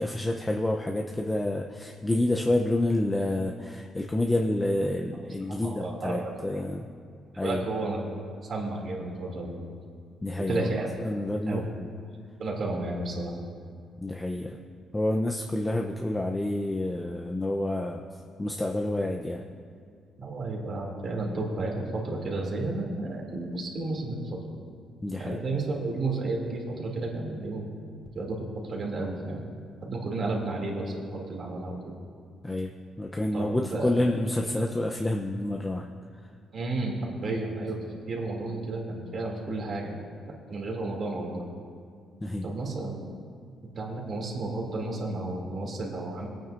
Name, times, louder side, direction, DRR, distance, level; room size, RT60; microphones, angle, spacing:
voice 1, 0.0-6.9 7.4-7.7 10.2-10.7 11.0-11.9 14.0-14.6 14.9-18.0 18.4-19.4 25.0-25.4 32.4-32.7 33.0-35.9 42.2-42.5, left 1 dB, 15° left, 1 dB, 0.6 m, -28 dB
voice 2, 5.6-6.4 7.4-8.0 8.4-9.6 10.5-10.9 11.5-11.6 12.4-13.4 20.2-24.2 25.1-27.6 28.1-28.4 28.6-29.4 29.8-31.8 33.3-34.0 36.5-37.8 38.1-39.9 40.5-41.4 42.4-43.0 43.8-46.3, right 2 dB, 50° right, -1 dB, 2.5 m, -32 dB
21.5 x 9.1 x 2.5 m, 2.2 s
cardioid pair, 105°, 0 cm